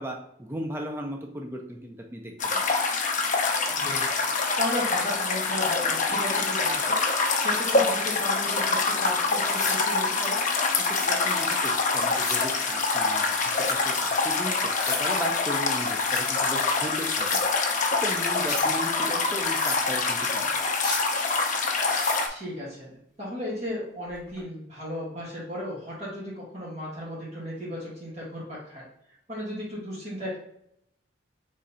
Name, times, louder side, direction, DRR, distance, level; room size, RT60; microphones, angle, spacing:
voice 1, 0.0-2.6 10.8-14.7 15.0-17.4 18.0-20.7, right 1 dB, 10° right, 1 dB, 0.4 m, -36 dB
sound 1, 2.4-22.3, left 4 dB, 40° left, 0.6 m, -25 dB
voice 2, 3.7-4.2 4.6-10.4 22.3-28.9 29.3-30.4, left 1 dB, 35° right, -7 dB, 1.6 m, -35 dB
sound 2, 9.4-9.8 10.7-11.1 12.0-12.5 13.3-13.8 14.6-15.1 15.8-16.3 17.0-17.5 18.2-18.7 19.4-19.8 20.6-21.1 21.7-22.2 24.2-24.4, left 3 dB, 20° left, 1.5 m, -35 dB
3.7 x 3.2 x 4.0 m, 0.72 s
head